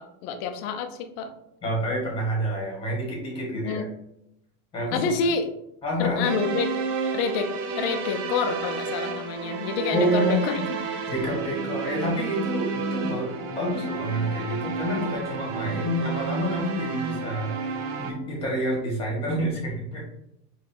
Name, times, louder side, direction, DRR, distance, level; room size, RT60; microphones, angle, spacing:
voice 1, 0.0-1.3 3.5-3.9 4.9-5.5 6.0-6.8 7.1-7.5 7.8-10.8, left 5 dB, 40° left, 7 dB, 0.6 m, -28 dB
voice 2, 1.6-3.8 4.7-5.0 5.8-6.2 9.9-10.4 11.1-20.0, equal, 10° left, -3 dB, 1.6 m, -28 dB
sound 1, 6.2-18.1, right 5 dB, 55° right, 0.9 m, -31 dB
5.3 x 3.2 x 2.8 m, 0.80 s
supercardioid pair, 165°, 45 cm